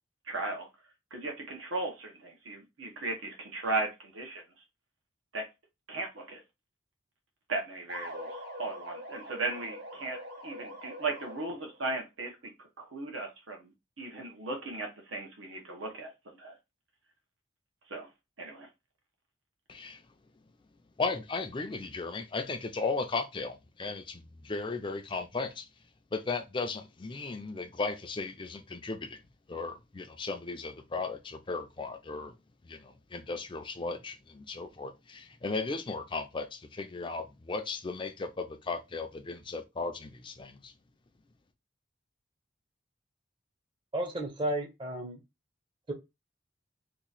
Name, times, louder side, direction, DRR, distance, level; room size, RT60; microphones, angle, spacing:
voice 1, 0.3-0.7 1.1-4.4 5.3-5.4 5.9-6.4 7.5-10.2 10.4-12.4 12.8-13.7 14.0-16.1 16.4-16.5 17.9-18.1 18.4-18.7, right 3 dB, 90° right, 1.0 m, -36 dB
sound 1, 7.9-11.8, equal, 60° right, 1.2 m, -44 dB
voice 2, 19.7-20.0 21.0-25.7 26.1-29.2 29.5-32.4 32.6-40.7, left 3 dB, 25° left, 0.4 m, -36 dB
voice 3, 43.9-45.2 45.9-46.0, right 1 dB, 25° right, 0.6 m, -33 dB
2.9 x 2.4 x 3.9 m
head